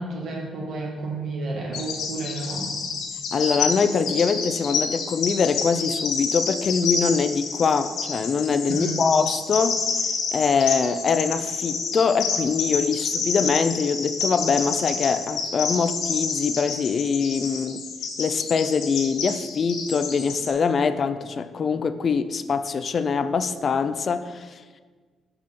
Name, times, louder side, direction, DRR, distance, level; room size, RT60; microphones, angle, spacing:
voice 1, 0.0-2.7 8.7-9.0, right 2 dB, 65° right, 1.9 m, -31 dB
Bird vocalization bird call bird song, 1.7-20.5, left 5 dB, 85° left, 1.0 m, -29 dB
voice 2, 3.3-9.8 10.3-17.8 18.2-24.5, left 5 dB, 50° left, 0.4 m, -23 dB
5.9 x 5.2 x 5.2 m
cardioid pair, 90°, 0 cm